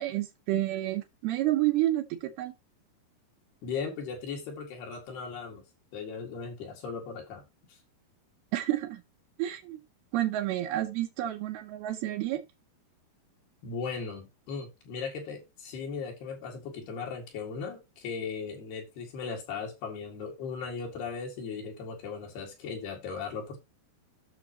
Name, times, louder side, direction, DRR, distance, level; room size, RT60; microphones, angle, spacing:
voice 1, 0.0-2.5 8.5-9.0 9.4-9.8 10.1-12.4, right 14 dB, 80° right, 2.7 m, -29 dB
voice 2, 3.6-5.6 5.9-7.4 13.6-23.6, left 5 dB, 75° left, 4.1 m, -37 dB
14.0 x 6.3 x 3.0 m
omnidirectional pair, 4.6 m